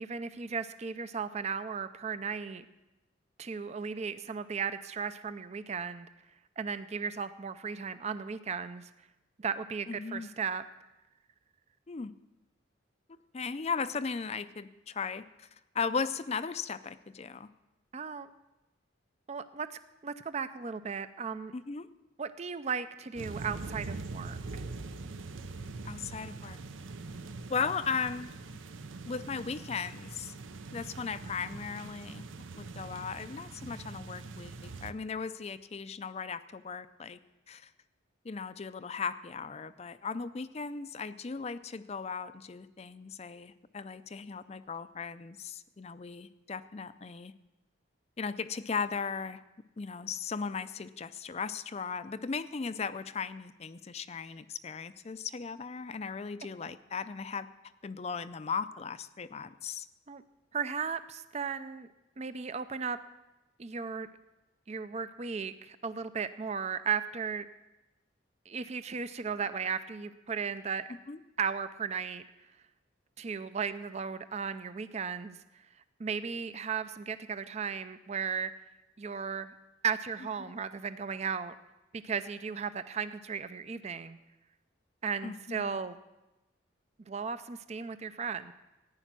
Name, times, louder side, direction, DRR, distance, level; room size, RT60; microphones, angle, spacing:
voice 1, 0.0-2.6 3.4-6.1 6.6-8.9 9.4-10.6 17.9-18.3 19.3-21.5 22.2-24.6 60.1-60.2 60.5-61.9 62.2-63.0 63.6-64.1 64.7-67.5 68.5-70.9 71.4-72.2 73.2-75.4 76.0-78.5 79.0-79.5 79.8-81.6 81.9-84.2 85.0-86.0 87.1-88.5, right 6 dB, 35° right, 12 dB, 0.4 m, -35 dB
voice 2, 9.9-10.3 11.9-12.1 13.1-15.5 15.7-17.5 21.5-21.9 25.8-26.6 27.5-28.3 29.0-30.3 30.7-32.2 32.6-37.2 37.5-37.7 38.2-47.3 48.2-49.4 49.8-57.5 57.8-59.9 71.1-71.2 85.2-85.8, left 5 dB, 35° left, 13 dB, 0.4 m, -37 dB
sound 1, 23.2-34.9, right 3 dB, 80° right, 0.7 m, -43 dB
14.5 x 10.0 x 6.0 m, 1.0 s
head